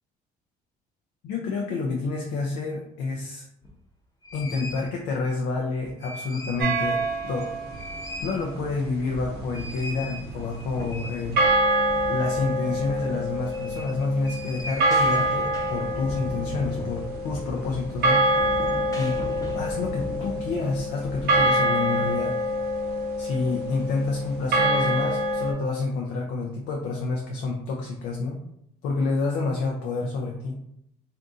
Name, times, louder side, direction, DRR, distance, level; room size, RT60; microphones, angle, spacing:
voice 1, 1.2-3.5 4.3-7.6 8.2-11.4 12.1-18.2 18.9-19.2 19.5-22.3 23.2-28.4 28.8-30.6, left 3 dB, 85° left, 0 dB, 0.5 m, -28 dB
sound 1, 3.6-3.7 4.2-4.9 5.7-6.7 7.1-7.2 7.5-21.4, left 1 dB, 20° left, 0.7 m, -38 dB
sound 2, 6.6-7.7 11.4-25.5, right 1 dB, 70° right, 0.7 m, -26 dB
2.6 x 2.6 x 3.6 m, 0.75 s
cardioid pair, 110°, 17 cm